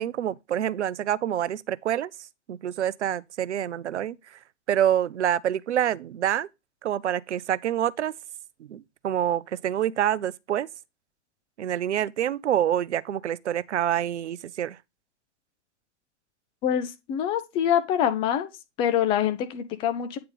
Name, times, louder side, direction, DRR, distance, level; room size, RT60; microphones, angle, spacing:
voice 1, 0.0-2.1 2.5-4.4 4.7-6.5 6.8-8.1 8.6-10.7 11.6-14.8, right 10 dB, 70° right, 0.5 m, -27 dB
voice 2, 16.6-18.5 18.8-20.2, left 9 dB, 15° left, 0.3 m, -25 dB
8.7 x 3.3 x 5.3 m
figure-of-eight pair, 105°, 35 cm